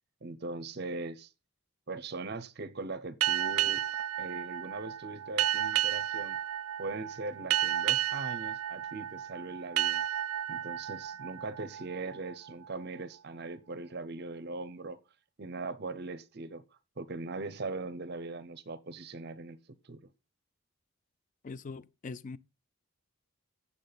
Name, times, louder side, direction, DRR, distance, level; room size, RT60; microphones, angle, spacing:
voice 1, 0.2-1.3 1.9-3.8 4.2-6.4 6.8-10.0 10.5-15.0 15.4-16.6 17.0-19.6 19.9-20.1, right 3 dB, 50° right, 0.6 m, -40 dB
sound 1, 3.2-12.5, right 12 dB, 90° right, 0.3 m, -32 dB
voice 2, 21.4-22.4, left 4 dB, 35° left, 0.3 m, -42 dB
8.4 x 7.3 x 3.9 m
head